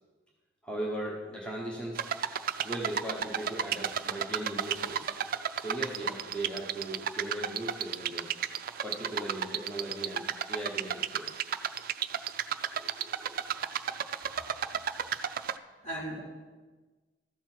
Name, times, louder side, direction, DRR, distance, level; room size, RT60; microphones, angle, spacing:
voice 1, 0.6-2.0 2.6-5.1 5.5-8.3 8.8-11.4 12.7-13.4, right 1 dB, 5° left, -3 dB, 1.1 m, -38 dB
sound 1, 2.0-15.6, right 9 dB, 55° right, 0.3 m, -33 dB
voice 2, 14.2-14.7 15.2-16.2, right 1 dB, 45° left, -7 dB, 3.5 m, -42 dB
13.5 x 6.0 x 4.5 m, 1.3 s
head